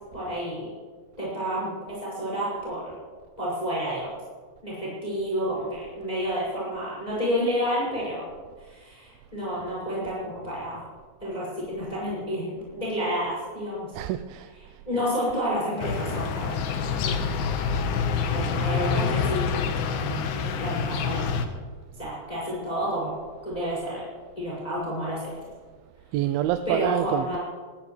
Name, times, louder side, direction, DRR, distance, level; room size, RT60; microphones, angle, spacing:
voice 1, 0.1-0.7 1.2-2.9 3.4-4.1 4.6-8.3 8.6-10.9 11.2-13.9 14.9-16.6 16.9-17.4 18.2-19.5 19.8-21.3 22.0-24.0 24.4-25.3 26.6-27.4, equal, 10° left, -7 dB, 6.0 m, -30 dB
voice 2, 13.9-14.8 26.1-27.4, right 12 dB, 85° right, 10 dB, 2.4 m, -27 dB
sound 1, 15.8-21.5, left 5 dB, 85° left, 3.1 m, -27 dB
20.5 x 19.5 x 3.3 m, 1.5 s
omnidirectional pair, 4.3 m